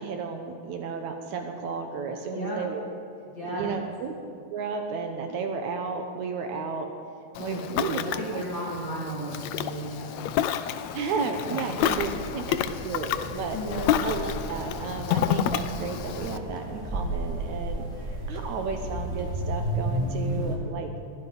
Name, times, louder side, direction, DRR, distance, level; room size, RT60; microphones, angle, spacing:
voice 1, 0.0-2.8 3.5-4.1 4.5-6.9 7.4-8.1 8.3-8.7 10.9-12.6 12.8-13.1 13.3-13.6 14.0-17.9 18.3-20.9, right 5 dB, 70° right, 4 dB, 2.3 m, -33 dB
voice 2, 3.3-3.8 7.3-10.3 11.5-11.6 13.2-14.0, right 1 dB, 40° left, -6 dB, 3.0 m, -35 dB
Ocean, 7.3-16.4, left 10 dB, 80° left, 1.7 m, -30 dB
sound 1, 11.8-20.6, right 1 dB, 25° right, 2.2 m, -33 dB
22.0 x 15.0 x 4.0 m, 2.3 s
omnidirectional pair, 3.7 m